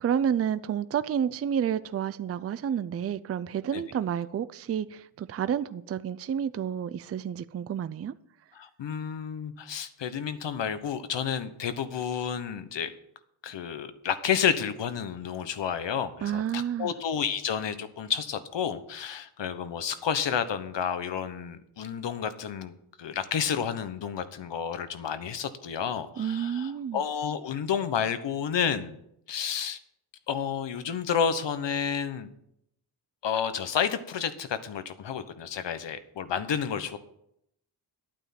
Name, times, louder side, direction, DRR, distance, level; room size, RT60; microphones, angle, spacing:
voice 1, 0.0-8.1 16.2-16.9 26.2-27.0, right 8 dB, 30° right, 0.4 m, -30 dB
voice 2, 8.5-12.9 13.4-22.7 23.0-29.0 29.3-29.8 30.3-32.3 33.2-37.0, left 7 dB, 60° left, 1.2 m, -30 dB
11.5 x 9.1 x 5.9 m
cardioid pair, 120°, 48 cm